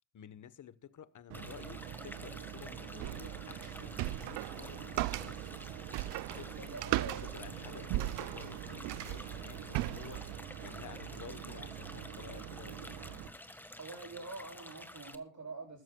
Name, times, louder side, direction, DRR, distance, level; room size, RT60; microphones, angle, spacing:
voice 1, 0.1-5.5 6.4-6.7 7.2-13.0, left 8 dB, 40° left, 1.1 m, -52 dB
sound 1, 1.3-15.1, left 1 dB, 5° left, 1.5 m, -51 dB
sound 2, 1.3-13.3, right 10 dB, 80° right, 1.4 m, -46 dB
sound 3, 3.0-10.4, right 18 dB, 60° right, 0.6 m, -38 dB
voice 2, 6.5-8.3 13.8-15.8, right 3 dB, 35° right, 7.7 m, -46 dB
21.0 x 13.0 x 2.3 m
hypercardioid pair, 65°, 47 cm